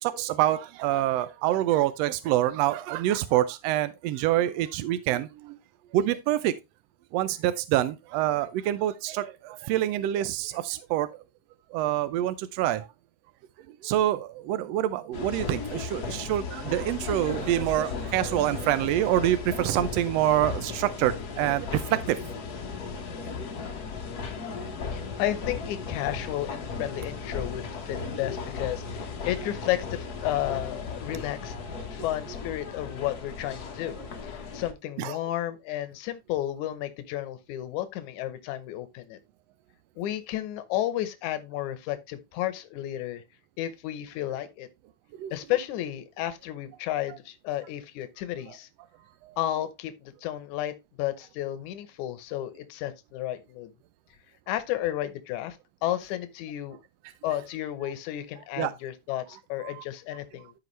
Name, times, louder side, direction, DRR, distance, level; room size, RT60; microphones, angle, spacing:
voice 1, 0.0-5.6 5.9-6.5 7.1-11.1 11.7-12.9 13.8-22.2 35.0-35.2 45.2-45.3 49.2-49.4 58.6-58.7 59.6-59.8, right 13 dB, 80° right, 1.5 m, -26 dB
sound 1, 15.1-34.7, left 5 dB, 60° left, 1.0 m, -36 dB
voice 2, 24.9-31.6 31.9-34.0 34.2-39.2 40.0-43.2 43.6-44.7 45.3-48.7 49.4-53.7 54.5-56.8 57.2-60.5, left 13 dB, 75° left, 2.3 m, -32 dB
14.0 x 4.8 x 3.1 m
omnidirectional pair, 3.4 m